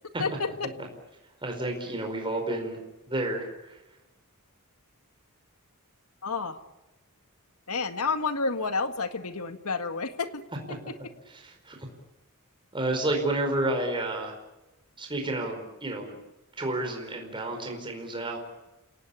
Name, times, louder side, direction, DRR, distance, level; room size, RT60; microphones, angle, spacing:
voice 1, 0.2-0.7 6.2-6.6 7.7-10.4, left 4 dB, 75° left, 8 dB, 1.8 m, -30 dB
voice 2, 1.4-2.8 3.1-3.8 11.3-11.9 12.7-14.3 15.0-16.2 16.6-18.4, right 2 dB, 25° right, 2 dB, 4.8 m, -30 dB
29.0 x 18.0 x 8.5 m, 1.0 s
head